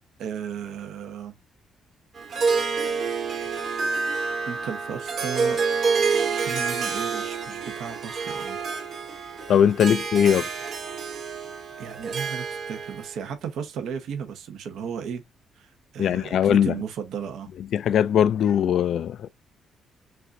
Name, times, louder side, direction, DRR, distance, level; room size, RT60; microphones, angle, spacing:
voice 1, 0.2-1.3 4.5-5.6 6.3-8.6 11.8-15.2 15.5-17.5, right 7 dB, 75° right, 1.0 m, -35 dB
Harp, 2.2-13.1, right 5 dB, 60° right, 1.9 m, -28 dB
voice 2, 9.5-10.5 16.0-16.7 17.7-19.3, left 9 dB, 70° left, 0.3 m, -20 dB
5.7 x 2.6 x 2.6 m
cardioid pair, 90°, 0 cm